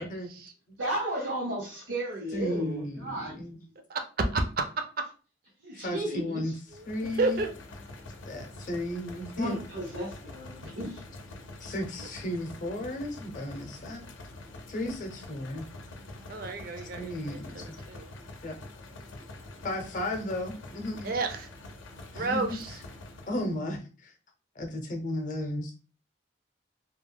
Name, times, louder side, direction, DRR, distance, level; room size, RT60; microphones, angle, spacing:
voice 1, 0.8-3.4 5.6-6.6 9.3-11.0 12.0-12.1, right 1 dB, 85° right, -5 dB, 1.1 m, -34 dB
voice 2, 2.3-3.6 5.7-6.5 6.9-7.4 8.3-9.6 11.6-14.1 14.7-15.6 17.0-17.8 18.4-18.5 19.6-21.1 22.1-22.6 23.3-24.1 24.6-25.7, left 1 dB, 40° left, 4 dB, 0.5 m, -34 dB
voice 3, 4.3-4.6 5.7-5.8 6.7-6.8 7.1-7.5 16.3-18.2 21.0-21.5 22.1-22.8, right 3 dB, 50° right, 6 dB, 0.4 m, -31 dB
sound 1, 6.7-23.6, left 2 dB, 90° left, 0.5 m, -46 dB
2.3 x 2.1 x 3.2 m, 0.36 s
head